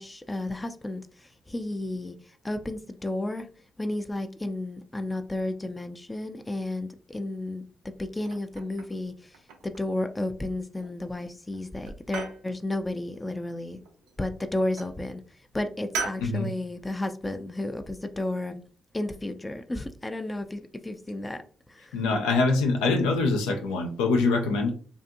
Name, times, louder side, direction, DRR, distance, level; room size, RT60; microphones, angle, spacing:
voice 1, 0.0-3.5 3.8-7.7 8.0-13.8 14.2-18.6 18.9-21.4 21.7-22.0, left 1 dB, 20° left, 0.4 m, -32 dB
sound 1, 8.2-9.0 9.3-10.0 10.8-11.3 11.5-12.4 13.9-14.4 14.8-15.0 15.9-16.3, right 5 dB, 85° right, 0.4 m, -37 dB
voice 2, 21.9-24.7, left 3 dB, 90° left, 0.4 m, -24 dB
2.5 x 2.5 x 2.6 m
hypercardioid pair, 50°, 0 cm